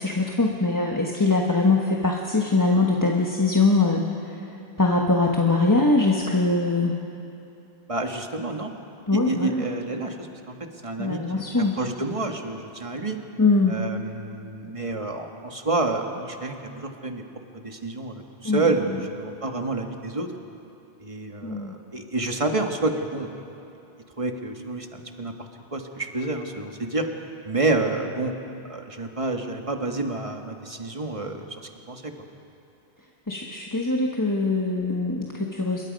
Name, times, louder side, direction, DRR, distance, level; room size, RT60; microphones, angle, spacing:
voice 1, 0.0-4.4 4.8-7.0 9.1-9.7 11.0-11.7 13.4-13.8 18.4-18.6 21.4-21.7 33.3-35.8, left 3 dB, 20° left, 0 dB, 1.2 m, -22 dB
voice 2, 7.9-8.7 9.1-10.6 10.8-11.4 11.8-13.2 13.7-17.2 17.5-20.3 21.0-23.3 24.2-27.1 27.4-28.3 28.7-32.1, right 2 dB, 30° right, 4 dB, 1.5 m, -29 dB
26.5 x 22.5 x 5.3 m, 2.8 s
omnidirectional pair, 1.1 m